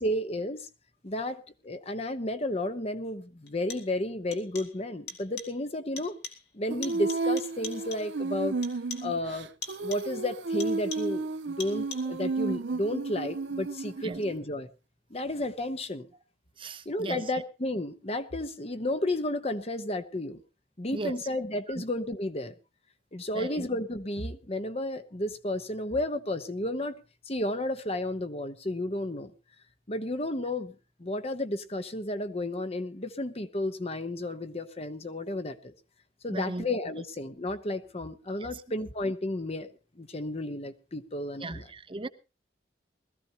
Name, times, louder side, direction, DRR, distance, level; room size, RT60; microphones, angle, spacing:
voice 1, 0.0-0.7 1.0-6.2 6.5-8.6 9.0-9.5 9.8-14.7 15.1-16.1 16.8-20.4 20.8-22.5 23.1-27.0 27.3-29.3 29.9-30.7 31.0-35.7 36.2-39.7 40.0-41.6, left 1 dB, 35° left, 1.0 m, -32 dB
sound 1, 2.4-2.5 3.5-4.0 4.3-4.8 5.1-5.6 6.0-6.5 6.8-8.2 8.6-9.2 9.6-10.2 10.6-11.2 11.6-12.2, left 4 dB, 65° left, 2.5 m, -43 dB
Female singing, 6.7-14.4, right 3 dB, 75° right, 0.7 m, -32 dB
voice 2, 16.6-17.2 20.9-21.2 21.7-21.8 23.3-23.7 36.3-36.7 37.0-37.1 38.4-38.6 41.4-42.1, right 2 dB, 30° right, 0.8 m, -37 dB
20.5 x 14.5 x 2.9 m
head